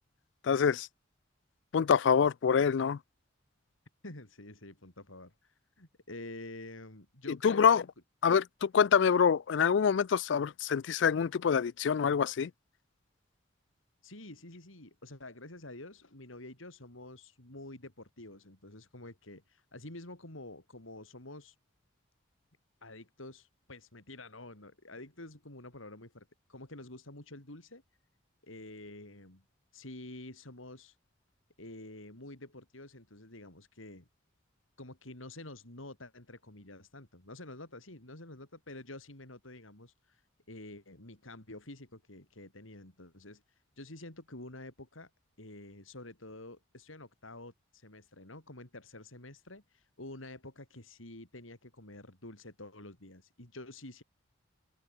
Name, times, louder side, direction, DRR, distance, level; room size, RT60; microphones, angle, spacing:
voice 1, 0.4-0.9 1.7-3.0 7.4-7.8 8.2-12.5, left 7 dB, 65° left, 0.4 m, -26 dB
voice 2, 4.0-7.9 14.0-21.5 22.8-27.8 28.4-29.4 29.7-31.0 31.6-34.1 34.8-40.2 40.5-43.4 43.8-45.1 45.4-54.0, left 2 dB, 85° left, 4.6 m, -48 dB
head